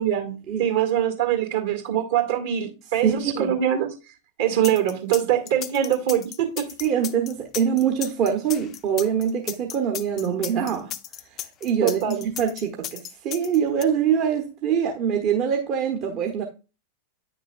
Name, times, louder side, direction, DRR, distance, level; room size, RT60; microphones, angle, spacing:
voice 1, 0.0-3.9 4.4-6.6 11.8-12.2, right 10 dB, 60° right, 1.9 m, -23 dB
voice 2, 3.0-3.5 6.8-10.9 11.3-16.4, right 8 dB, 40° right, 1.0 m, -24 dB
sound 1, 4.6-13.8, left 12 dB, 35° left, 0.5 m, -35 dB
9.0 x 6.6 x 2.4 m
figure-of-eight pair, 90°, 0 cm